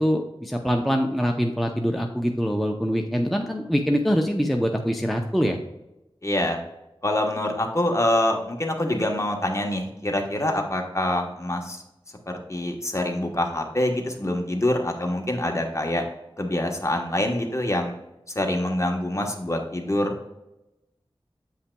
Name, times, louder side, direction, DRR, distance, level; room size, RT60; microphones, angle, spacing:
voice 1, 0.0-5.6, equal, ahead, 2 dB, 0.6 m, -24 dB
voice 2, 6.2-6.6 7.0-11.8 12.3-16.0 16.4-17.9 18.3-20.1, left 1 dB, 30° left, 2 dB, 1.1 m, -25 dB
8.5 x 5.6 x 2.2 m, 0.94 s
wide cardioid pair, 55°, 10 cm